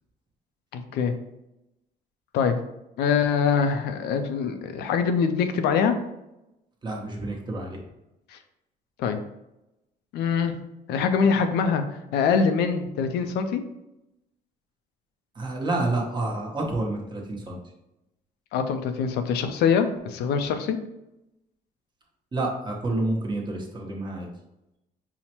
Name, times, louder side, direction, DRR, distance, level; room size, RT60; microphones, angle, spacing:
voice 1, 0.7-1.1 2.3-2.5 3.0-5.9 8.3-8.4 9.0-9.2 10.1-10.6 10.9-13.6 18.5-20.8, left 6 dB, 80° left, 7 dB, 0.4 m, -24 dB
voice 2, 6.8-7.8 15.4-17.6 22.3-24.3, right 2 dB, 25° right, 0 dB, 0.9 m, -29 dB
5.5 x 2.1 x 2.9 m, 0.90 s
cardioid pair, 110°, 17 cm